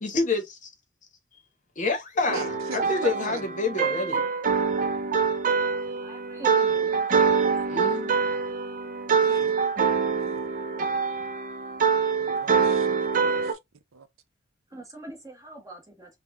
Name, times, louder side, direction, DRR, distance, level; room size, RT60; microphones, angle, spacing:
voice 1, 0.0-0.7 1.8-4.3 7.7-8.2, left 3 dB, 40° left, 0.9 m, -28 dB
sound 1, 2.3-13.5, right 5 dB, 40° right, 0.4 m, -25 dB
voice 2, 2.3-3.5 9.2-9.6 10.2-10.5 12.2-13.6 13.9-14.1, right 5 dB, 85° right, 0.6 m, -40 dB
voice 3, 6.0-7.8 14.7-16.2, right 2 dB, 15° right, 1.1 m, -43 dB
3.7 x 2.2 x 3.5 m
head